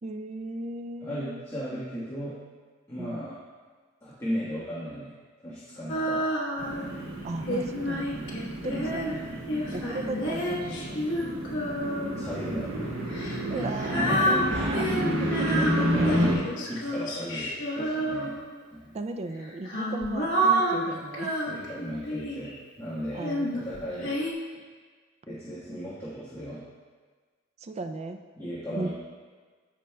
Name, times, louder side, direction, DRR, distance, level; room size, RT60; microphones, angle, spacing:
voice 1, 0.0-1.4 3.0-3.3 7.2-9.2 9.7-11.0 13.5-16.1 18.9-21.3 23.1-23.5 27.6-28.2 28.7-28.9, right 2 dB, 30° right, 7 dB, 0.3 m, -36 dB
voice 2, 1.0-2.3 2.9-3.3 4.0-5.1 5.4-6.2 8.6-9.0 12.1-13.0 13.7-14.9 15.9-16.3 16.7-18.3 18.7-18.9 21.5-24.1 25.3-26.6 28.4-28.9, equal, 15° left, -11 dB, 1.4 m, -36 dB
Female singing, 5.9-6.9 7.5-12.3 13.1-18.6 19.4-22.5 23.2-24.3, equal, 60° left, 1.2 m, -29 dB
sound 1, 6.6-16.3, equal, 75° right, 1.5 m, -30 dB
13.5 x 5.1 x 2.2 m, 1.5 s
head